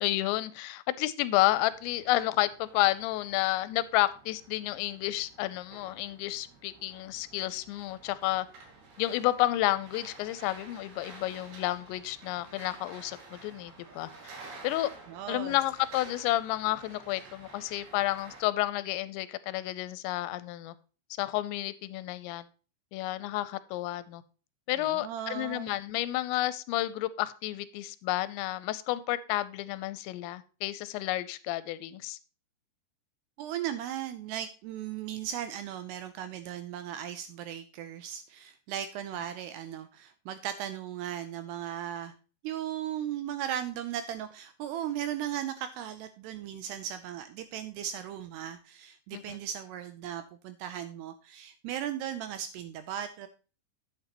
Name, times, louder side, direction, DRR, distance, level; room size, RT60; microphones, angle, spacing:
voice 1, 0.0-8.5 9.0-14.1 14.6-14.9 15.3-20.7 21.2-22.5 22.9-24.2 24.7-32.2 49.1-49.4, left 16 dB, 85° left, 16 dB, 2.8 m, -31 dB
sound 1, 1.4-18.4, right 3 dB, 60° right, 3.9 m, -51 dB
voice 2, 15.1-15.6 24.8-25.7 33.4-42.1 42.4-53.3, right 10 dB, 85° right, 10 dB, 2.4 m, -37 dB
9.7 x 8.6 x 2.9 m, 0.35 s
omnidirectional pair, 5.3 m